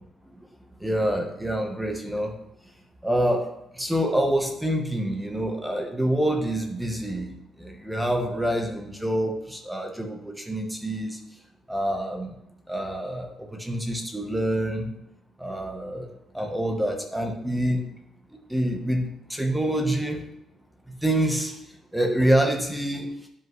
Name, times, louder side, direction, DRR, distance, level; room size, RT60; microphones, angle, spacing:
voice 1, 0.8-2.3 3.0-3.4 3.8-7.3 7.6-11.2 11.7-12.3 12.7-14.9 15.4-16.1 16.3-17.8 18.5-20.2 21.0-21.5 21.9-23.1, right 1 dB, 5° right, 3 dB, 0.9 m, -26 dB
10.0 x 5.3 x 3.1 m, 0.82 s
cardioid pair, 160°, 0 cm